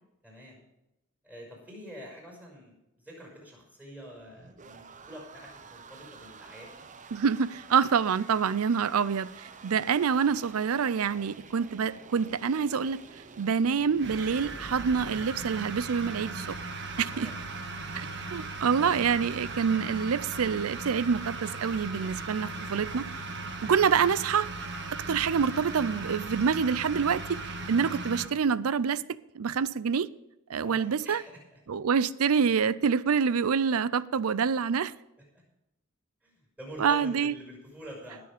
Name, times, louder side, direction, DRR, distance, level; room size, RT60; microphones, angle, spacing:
voice 1, 0.2-0.6 1.2-6.8 11.1-11.4 16.8-17.4 17.8-17.9 23.1-23.5 30.5-31.6 36.2-38.2, equal, 5° right, 5.6 m, -47 dB
sound 1, 4.0-15.2, right 4 dB, 35° right, 0.8 m, -50 dB
voice 2, 7.1-13.0 13.4-16.6 17.0-17.3 18.3-23.0 23.6-24.5 25.1-29.0 29.3-30.1 30.5-31.2 31.7-34.9 36.8-37.3, right 6 dB, 75° right, 0.5 m, -26 dB
sound 2, 14.0-28.3, right 3 dB, 55° right, 1.5 m, -38 dB
20.5 x 6.9 x 5.1 m
head